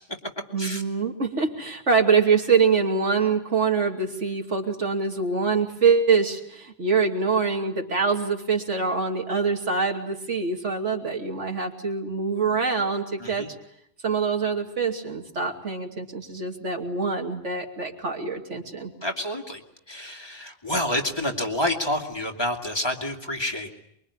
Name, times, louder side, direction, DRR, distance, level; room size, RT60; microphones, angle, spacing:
voice 1, 0.5-13.5 14.0-18.9, right 5 dB, 80° right, 2 dB, 3.0 m, -24 dB
voice 2, 19.0-19.6 19.9-23.7, left 1 dB, 20° left, 2 dB, 2.4 m, -28 dB
24.0 x 23.0 x 9.8 m, 0.74 s
omnidirectional pair, 1.2 m